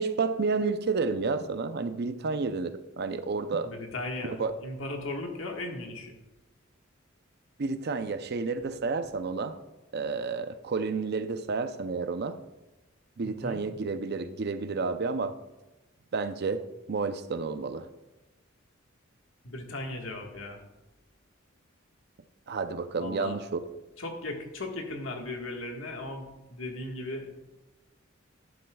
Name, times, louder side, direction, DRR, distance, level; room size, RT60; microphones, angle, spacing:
voice 1, 0.0-3.7 4.2-4.5 7.6-9.6 9.9-12.4 13.2-15.3 16.1-17.9 22.5-23.6, right 4 dB, 55° right, 0.6 m, -30 dB
voice 2, 3.6-6.2 13.2-13.6 19.4-20.6 23.0-23.4 24.0-27.5, left 2 dB, 80° left, 1.6 m, -37 dB
11.5 x 11.0 x 2.3 m
head